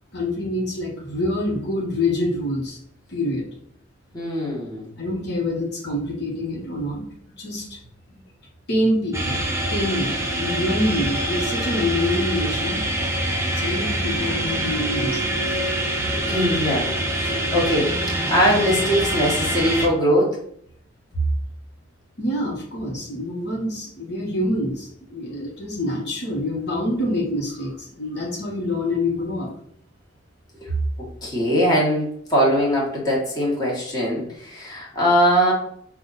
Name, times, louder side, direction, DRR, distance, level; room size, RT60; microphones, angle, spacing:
voice 1, 0.1-2.8 3.1-3.5 5.0-7.0 7.4-7.6 8.1-8.2 8.7-12.8 13.5-15.3 22.2-29.5, left 1 dB, 60° left, -3 dB, 1.1 m, -26 dB
voice 2, 4.1-4.9 16.3-20.4 30.6-30.7 31.0-35.5, equal, 20° left, -4 dB, 1.4 m, -21 dB
sound 1, 9.1-19.9, right 1 dB, 15° right, 0.6 m, -25 dB
5.5 x 2.4 x 4.0 m, 0.65 s
head